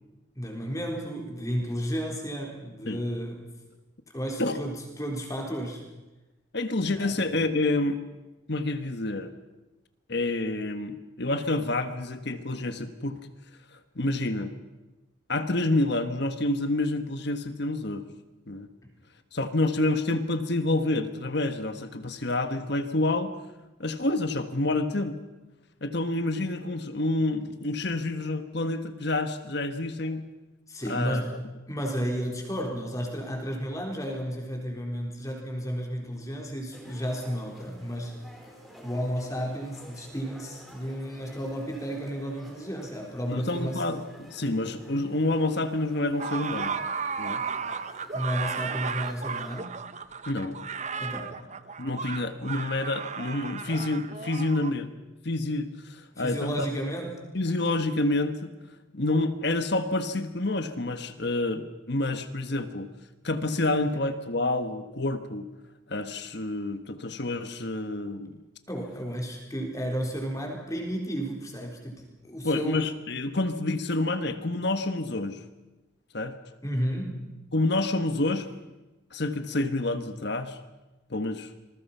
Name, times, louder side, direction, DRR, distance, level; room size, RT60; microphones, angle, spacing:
voice 1, 0.4-3.4 4.1-5.8 6.9-7.2 30.7-38.1 38.8-43.8 48.1-49.7 51.0-51.4 56.2-57.2 68.7-72.9 76.6-77.3, equal, 15° left, 1 dB, 4.0 m, -32 dB
voice 2, 6.5-8.0 8.5-9.3 10.1-13.2 13.9-14.5 15.3-18.0 18.5-18.7 19.3-23.3 23.8-25.2 25.8-30.3 30.8-31.2 43.3-46.8 47.2-47.4 50.2-50.6 51.8-54.9 55.2-56.7 57.3-58.5 58.9-62.9 63.2-65.5 65.9-68.4 72.4-75.4 76.1-76.3 77.5-78.5 79.1-80.6 81.1-81.5, left 2 dB, 55° left, 9 dB, 1.4 m, -28 dB
sound 1, 36.7-49.6, equal, ahead, 3.9 m, -49 dB
sound 2, 46.2-54.7, right 6 dB, 35° right, 0.8 m, -34 dB
27.0 x 21.0 x 5.7 m, 1.1 s
head